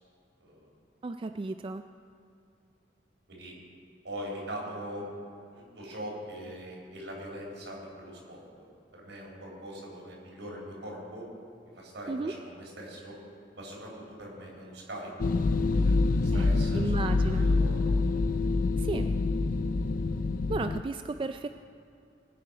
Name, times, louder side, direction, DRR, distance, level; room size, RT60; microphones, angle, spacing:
voice 1, 1.0-1.8 12.1-12.3 16.3-16.5 16.7-17.5 18.8-19.1 20.5-21.5, right 3 dB, 30° right, 8 dB, 0.3 m, -33 dB
voice 2, 4.0-5.1 5.5-8.7 8.9-11.3 11.7-13.2 13.5-15.3 15.7-17.0 17.3-17.9 18.7-19.1, equal, 80° right, -3 dB, 4.3 m, -42 dB
sound 1, 15.2-20.8, left 3 dB, 50° left, 0.4 m, -26 dB
21.0 x 8.9 x 5.0 m, 2.5 s
head